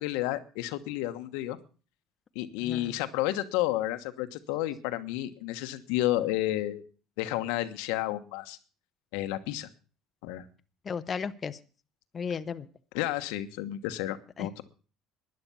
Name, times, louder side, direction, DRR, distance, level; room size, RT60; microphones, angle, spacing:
voice 1, 0.0-1.6 2.3-6.8 7.2-8.6 9.1-9.7 10.2-10.4 12.9-14.6, left 15 dB, 90° left, 10 dB, 1.2 m, -31 dB
voice 2, 2.6-3.0 10.8-11.6 12.1-12.7 14.4-14.5, left 6 dB, 35° left, 11 dB, 0.8 m, -34 dB
12.0 x 10.5 x 7.0 m, 0.37 s
supercardioid pair, 105°, 0 cm